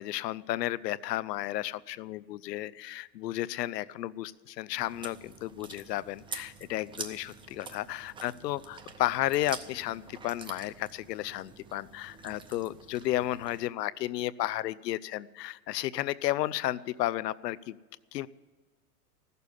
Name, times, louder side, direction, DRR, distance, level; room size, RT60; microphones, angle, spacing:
voice 1, 0.0-17.8 18.1-18.3, left 15 dB, 85° left, 19 dB, 0.6 m, -33 dB
Chewing mastication, 4.8-13.6, right 5 dB, 10° right, 0.5 m, -46 dB
15.5 x 6.8 x 9.8 m, 1.4 s
supercardioid pair, 130°, 47 cm